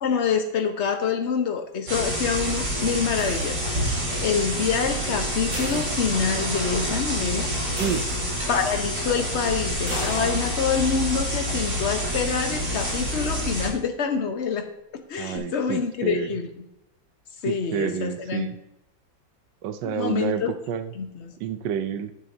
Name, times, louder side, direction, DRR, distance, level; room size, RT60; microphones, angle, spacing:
voice 1, 0.0-3.9 4.1-7.5 8.5-14.7 14.9-16.5 17.4-18.5 19.8-20.5 20.9-21.3, left 6 dB, 40° left, 5 dB, 1.2 m, -26 dB
sound 1, 1.9-13.7, equal, 90° right, 5.1 m, -27 dB
sound 2, 3.2-4.0 5.5-6.6 7.0-7.1 7.8-8.7 9.9-10.6, right 1 dB, 30° right, 2.6 m, -38 dB
sound 3, 9.7-11.6 15.4-15.5, left 5 dB, 70° left, 1.7 m, -37 dB
voice 2, 15.2-16.3 17.5-18.6 19.6-20.9 21.4-22.1, right 8 dB, 75° right, 9 dB, 1.3 m, -29 dB
11.0 x 9.6 x 2.8 m, 0.85 s
omnidirectional pair, 2.0 m